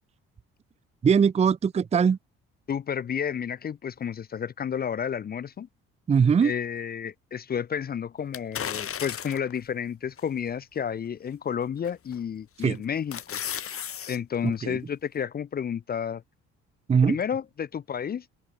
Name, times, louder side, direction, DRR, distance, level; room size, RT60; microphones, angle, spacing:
voice 1, 1.0-2.2 6.1-6.5 12.6-12.8 14.4-14.8 16.9-17.2, right 6 dB, 20° right, 0.5 m, -21 dB
voice 2, 2.7-5.7 6.4-13.4 14.1-16.2 17.0-18.3, left 8 dB, 30° left, 0.5 m, -31 dB
sound 1, 8.3-9.6 10.2-10.3 11.9-12.2 12.6-14.2 14.5-14.6, left 8 dB, 45° left, 1.7 m, -34 dB
open air
supercardioid pair, 65°, 30 cm